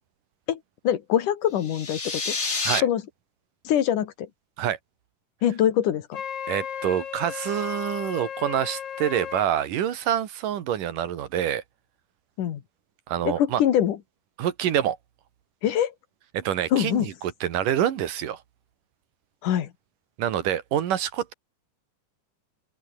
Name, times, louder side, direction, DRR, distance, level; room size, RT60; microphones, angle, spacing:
voice 1, 0.8-2.4 2.8-3.0 3.6-4.3 5.4-6.1 12.4-12.6 13.2-14.0 15.6-15.9 16.7-17.1 19.4-19.7, left 10 dB, 75° left, 3.2 m, -23 dB
sound 1, 1.6-2.8, left 4 dB, 25° left, 2.0 m, -28 dB
Wind instrument woodwind instrument, 6.1-9.5, left 8 dB, 50° left, 2.6 m, -35 dB
voice 2, 6.5-11.6 13.1-13.6 14.4-15.0 16.3-18.4 20.2-21.3, right 10 dB, 85° right, 3.4 m, -26 dB
open air
omnidirectional pair, 3.7 m